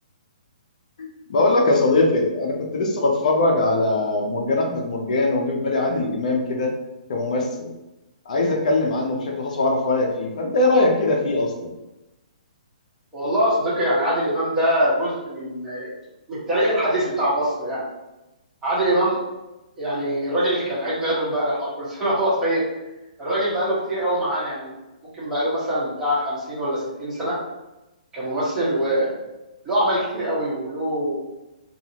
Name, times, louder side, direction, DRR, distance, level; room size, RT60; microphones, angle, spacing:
voice 1, 1.0-6.7 7.1-7.7 8.3-11.7, left 2 dB, 60° left, 0 dB, 0.5 m, -21 dB
voice 2, 13.1-15.9 16.3-17.8 18.6-19.2 19.8-22.6 23.2-24.7 25.1-27.3 28.1-29.2 29.6-31.2, equal, 10° right, -9 dB, 1.1 m, -23 dB
2.6 x 2.4 x 2.8 m, 0.98 s
hypercardioid pair, 150°, 5 cm